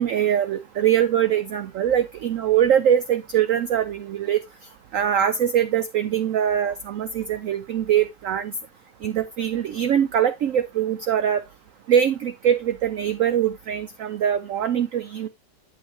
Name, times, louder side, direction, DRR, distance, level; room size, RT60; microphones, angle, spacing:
voice 1, 0.0-4.4 4.9-8.5 9.0-11.4 11.9-15.3, right 9 dB, 80° right, 0.7 m, -22 dB
8.4 x 7.5 x 2.9 m
omnidirectional pair, 2.0 m